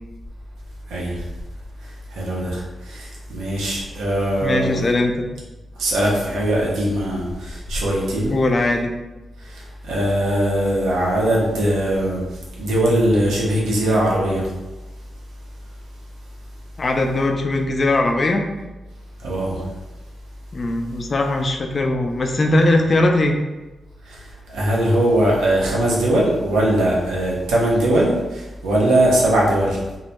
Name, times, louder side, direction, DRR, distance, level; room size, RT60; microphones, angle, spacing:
voice 1, 2.1-4.8 5.8-8.3 9.5-12.2 12.6-14.4 19.2-19.6 24.1-24.2 24.5-29.8, right 1 dB, 80° right, -4 dB, 0.6 m, -20 dB
voice 2, 4.4-5.3 8.3-8.9 16.8-18.4 20.5-23.4, left 2 dB, 50° left, 3 dB, 0.4 m, -20 dB
2.1 x 2.0 x 2.8 m, 1.1 s
hypercardioid pair, 40°, 0 cm